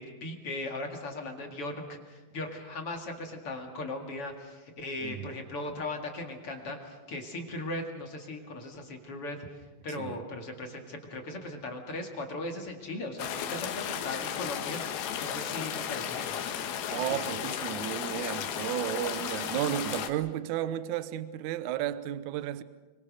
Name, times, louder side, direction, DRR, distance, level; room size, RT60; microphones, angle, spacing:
voice 1, 0.0-9.4 9.8-16.5 17.1-17.2, left 2 dB, 45° left, 2.5 m, -38 dB
voice 2, 5.0-5.4 10.0-10.2 16.9-22.6, right 12 dB, 85° right, 1.7 m, -33 dB
sound 1, 13.2-20.1, left 9 dB, 75° left, 3.2 m, -34 dB
25.5 x 23.5 x 6.4 m
omnidirectional pair, 4.5 m